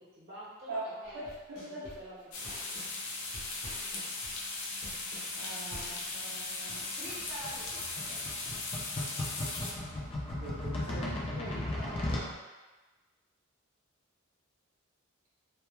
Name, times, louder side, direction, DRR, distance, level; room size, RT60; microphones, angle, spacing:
voice 1, 0.0-1.2 1.7-2.7 7.0-8.3 10.9-12.4, right 1 dB, 50° right, -7 dB, 0.8 m, -47 dB
sound 1, 1.0-2.9 3.3-6.1, equal, 45° left, 0.9 m, -47 dB
voice 2, 1.1-1.9 5.4-6.9 10.4-11.1, right 1 dB, 75° right, -7 dB, 0.5 m, -42 dB
sound 2, 2.3-9.7, left 3 dB, 80° left, 0.5 m, -38 dB
sound 3, 6.7-12.3, left 1 dB, 25° left, 0.4 m, -37 dB
2.2 x 2.2 x 3.0 m, 1.2 s
head